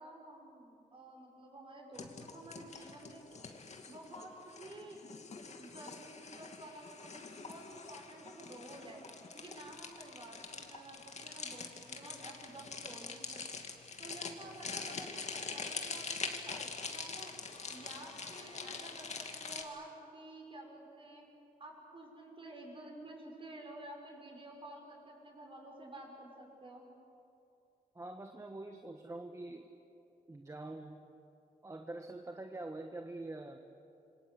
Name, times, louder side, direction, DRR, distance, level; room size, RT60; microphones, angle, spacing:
voice 1, 0.0-2.1 2.3-3.4 3.9-5.0 5.6-9.0 9.3-13.4 14.0-17.3 17.7-21.2 21.6-26.9, right 1 dB, 35° right, 0 dB, 6.7 m, -51 dB
sound 1, 1.9-19.6, left 4 dB, 50° left, 2.5 m, -44 dB
voice 2, 27.9-29.7 30.3-31.0 31.6-33.6, right 2 dB, 20° right, 4 dB, 1.4 m, -45 dB
27.5 x 25.0 x 8.3 m, 2.8 s
wide cardioid pair, 110°, 15 cm